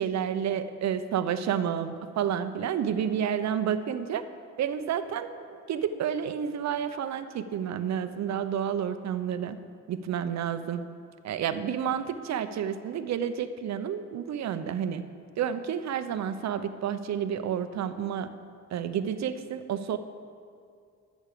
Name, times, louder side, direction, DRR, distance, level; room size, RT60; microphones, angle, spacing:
voice 1, 0.0-4.2 4.6-9.6 9.9-10.8 11.2-15.0 15.4-18.3 18.7-20.0, right 8 dB, 65° right, 10 dB, 0.8 m, -30 dB
14.0 x 6.3 x 6.8 m, 2.3 s
cardioid pair, 90°, 30 cm